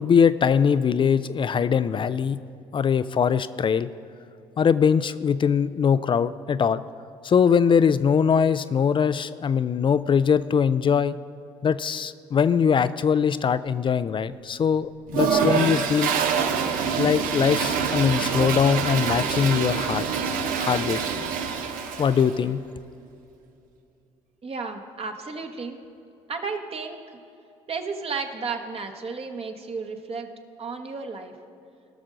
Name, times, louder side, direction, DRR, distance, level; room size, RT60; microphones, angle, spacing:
voice 1, 0.0-2.4 2.7-3.9 4.6-6.8 7.2-11.2 11.6-16.1 17.0-20.0 20.6-21.0 22.0-22.6, left 7 dB, 35° left, 14 dB, 0.4 m, -22 dB
Toilet flush, 15.1-22.4, right 6 dB, 70° right, 0.8 m, -25 dB
voice 2, 24.4-25.8 26.3-27.0 27.7-30.3 30.6-31.3, right 4 dB, 40° right, 4 dB, 1.2 m, -33 dB
18.0 x 6.2 x 3.9 m, 2.7 s
hypercardioid pair, 55°, 15 cm